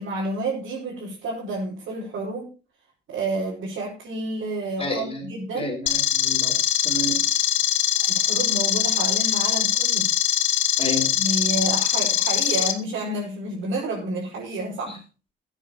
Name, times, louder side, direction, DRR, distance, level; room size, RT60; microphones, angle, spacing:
voice 1, 0.0-2.5 3.1-5.7 8.0-10.1 11.2-15.0, right 2 dB, 80° right, -5 dB, 5.1 m, -30 dB
voice 2, 4.8-5.3 5.5-6.6 6.8-7.2 10.8-11.1 14.9-15.0, left 1 dB, 30° left, 0 dB, 4.8 m, -30 dB
sound 1, 5.9-12.7, left 11 dB, 85° left, 1.3 m, -22 dB
14.0 x 9.0 x 4.3 m, 0.32 s
cardioid pair, 90°, 20 cm